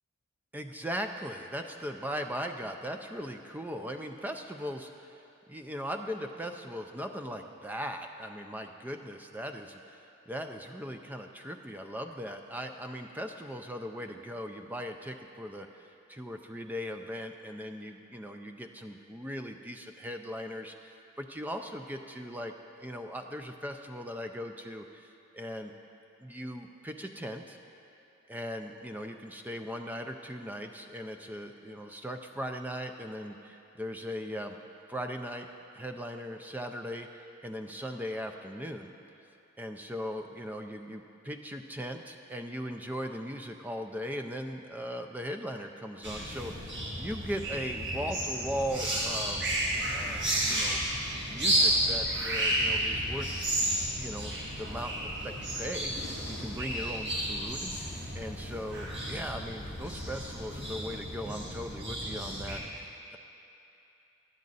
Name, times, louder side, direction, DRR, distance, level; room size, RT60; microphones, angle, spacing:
voice 1, 0.5-5.1 5.5-10.0 10.3-25.7 26.2-27.6 28.3-34.6 34.9-35.5 35.7-38.9 39.6-50.2 50.5-50.8 51.3-53.3 53.6-53.7 54.0-63.2, equal, 10° right, 5 dB, 0.3 m, -39 dB
sound 1, 46.0-62.6, right 1 dB, 55° right, 1.9 m, -32 dB
10.5 x 7.4 x 4.0 m, 2.8 s
head